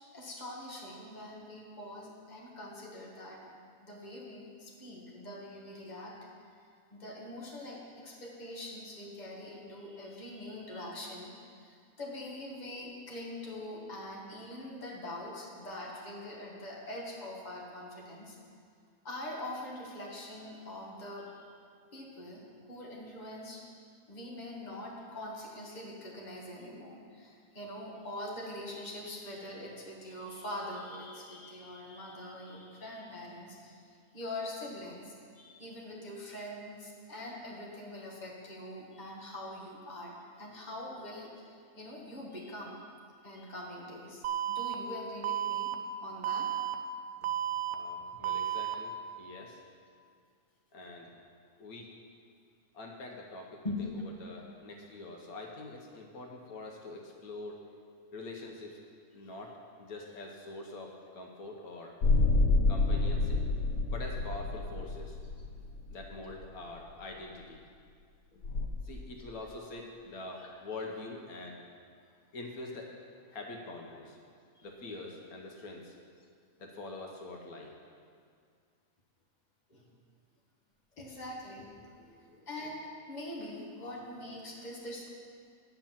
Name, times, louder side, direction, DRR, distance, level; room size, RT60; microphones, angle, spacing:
voice 1, 0.1-3.5 3.8-6.2 6.9-18.4 19.0-21.4 21.9-23.7 24.1-33.8 34.1-42.9 43.2-45.8 46.0-46.6 53.6-54.0 59.2-59.3 70.3-70.5 74.5-74.6 79.7-79.9 81.0-81.7 82.5-85.1, left 1 dB, 30° left, -3 dB, 1.6 m, -43 dB
Alarm, 44.2-44.7 45.2-45.7 46.2-46.7 47.2-47.7 48.2-48.7, right 11 dB, 65° right, 0.8 m, -32 dB
voice 2, 47.7-49.6 50.7-51.1 51.6-51.9 52.7-53.5 53.8-53.9 54.2-57.6 58.1-58.8 59.1-59.5 59.8-62.0 62.7-63.4 63.9-65.2 65.9-67.6 68.3-68.5 68.8-71.6 72.3-72.9 73.3-74.2 74.6-75.9 76.6-77.7 82.1-82.5, left 2 dB, 80° left, 1 dB, 1.4 m, -44 dB
sound 1, 62.0-66.5 68.4-68.7, left 3 dB, 65° left, 1.1 m, -28 dB
9.6 x 5.8 x 7.4 m, 2.2 s
omnidirectional pair, 1.5 m